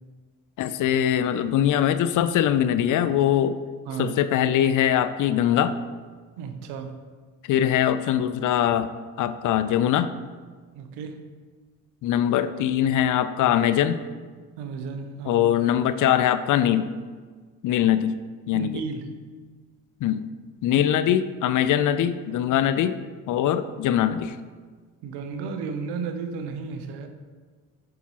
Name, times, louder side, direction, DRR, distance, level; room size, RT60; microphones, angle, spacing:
voice 1, 0.6-3.6 4.0-5.7 7.5-8.9 9.2-10.1 12.0-14.0 15.2-16.9 17.6-18.2 18.5-18.8 20.0-20.3 20.6-23.0 23.3-24.4, left 10 dB, 50° left, 12 dB, 0.4 m, -22 dB
voice 2, 3.9-4.2 6.4-7.0 10.8-11.2 14.6-15.4 18.5-19.1 25.0-27.1, right 5 dB, 70° right, 7 dB, 0.8 m, -33 dB
7.4 x 5.6 x 2.9 m, 1.5 s
hypercardioid pair, 60°, 42 cm